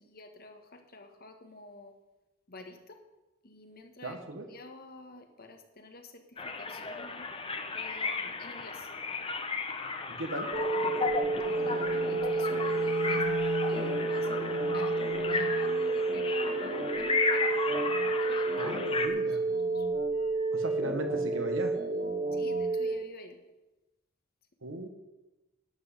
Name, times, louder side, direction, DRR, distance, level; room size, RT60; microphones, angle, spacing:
voice 1, 0.1-1.9 2.5-2.8 3.4-4.2 4.5-6.1 6.6-7.3 7.7-8.7 11.2-13.2 13.7-14.2 14.7-17.5 18.3-18.7 19.6-19.7 22.4-23.3, left 2 dB, 50° left, 6 dB, 1.5 m, -49 dB
voice 2, 4.0-4.5 10.1-10.5 18.6-19.4 20.5-21.7 24.6-24.9, right 2 dB, 70° right, 5 dB, 1.4 m, -37 dB
sound 1, 6.4-19.1, left 4 dB, 25° left, 1.0 m, -34 dB
sound 2, 10.5-22.9, right 3 dB, 45° right, 2.1 m, -30 dB
Bowed string instrument, 11.3-15.8, left 2 dB, 75° left, 3.1 m, -39 dB
12.0 x 6.2 x 8.3 m, 1.0 s
head